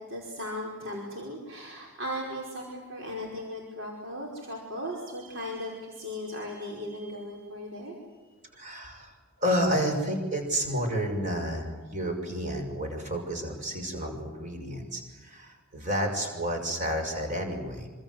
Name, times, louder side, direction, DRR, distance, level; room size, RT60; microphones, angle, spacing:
voice 1, 0.1-7.9, equal, 55° right, -2 dB, 5.1 m, -37 dB
voice 2, 8.5-17.9, equal, 35° right, 4 dB, 6.2 m, -30 dB
27.0 x 26.5 x 8.0 m, 1.3 s
head